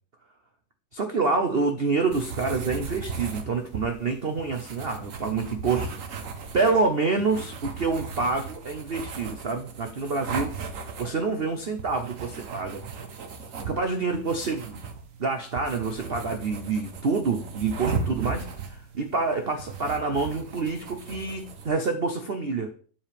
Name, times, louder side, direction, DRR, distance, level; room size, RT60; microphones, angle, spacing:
voice 1, 0.9-5.9 6.5-10.5 11.0-12.9 13.7-14.8 15.2-18.5 19.0-22.7, right 4 dB, 70° right, 6 dB, 0.5 m, -27 dB
sound 1, 2.1-21.7, right 4 dB, 50° right, 1.2 m, -37 dB
8.7 x 7.4 x 3.4 m, 0.42 s
omnidirectional pair, 2.2 m